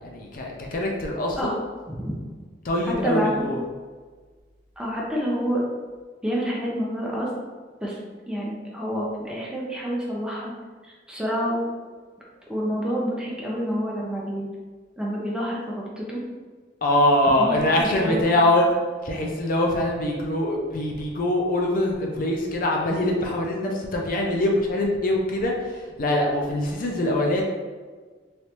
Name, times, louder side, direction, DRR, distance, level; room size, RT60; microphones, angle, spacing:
voice 1, 0.0-1.5 2.6-3.6 16.8-18.7 19.0-27.4, left 1 dB, 45° left, 0 dB, 0.4 m, -23 dB
voice 2, 1.9-2.2 2.8-3.5 4.8-5.6 6.2-7.3 7.8-8.0 8.3-10.5 11.1-11.7 12.5-14.5 15.0-16.2 17.4-18.2, equal, 5° right, -5 dB, 0.5 m, -28 dB
3.3 x 2.6 x 2.9 m, 1.4 s
head